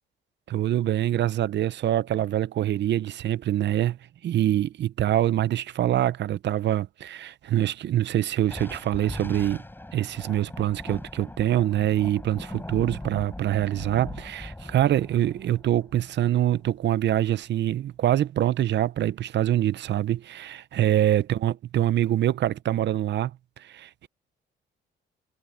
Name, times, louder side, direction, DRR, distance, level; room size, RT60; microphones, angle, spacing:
voice 1, 0.5-9.6 9.9-23.3 23.6-24.1, right 12 dB, 60° right, 0.7 m, -25 dB
Thunder, 8.4-17.2, left 1 dB, 10° left, 7.3 m, -40 dB
cardioid pair, 90°, 20 cm